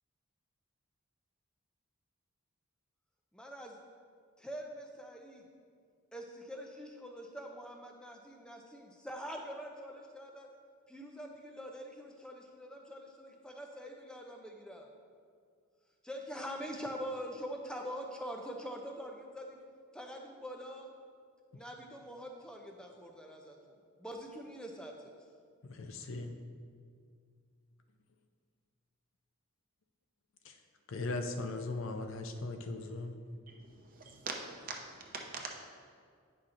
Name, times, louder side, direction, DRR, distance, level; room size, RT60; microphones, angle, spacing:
voice 1, 3.3-3.8 4.4-5.4 6.1-10.5 10.9-14.9 16.0-19.6 19.9-20.9 21.5-23.6 24.0-25.1, equal, 5° left, 2 dB, 0.5 m, -44 dB
voice 2, 25.6-26.4 30.4-30.6 30.9-33.1, left 2 dB, 65° left, 6 dB, 0.5 m, -38 dB
voice 3, 33.5-35.5, right 4 dB, 40° right, 0 dB, 0.8 m, -43 dB
9.6 x 5.7 x 2.5 m, 2.1 s
head